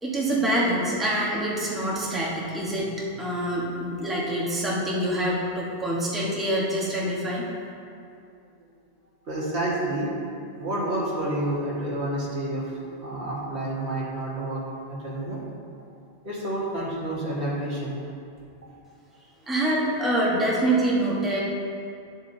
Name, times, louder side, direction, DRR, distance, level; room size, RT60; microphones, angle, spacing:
voice 1, 0.0-7.4 19.5-21.4, right 1 dB, ahead, -6 dB, 1.1 m, -25 dB
voice 2, 9.3-10.1 10.6-14.6 14.9-15.4 16.2-18.0, right 1 dB, 70° right, -6 dB, 1.9 m, -29 dB
10.5 x 7.2 x 2.7 m, 2.4 s
omnidirectional pair, 1.2 m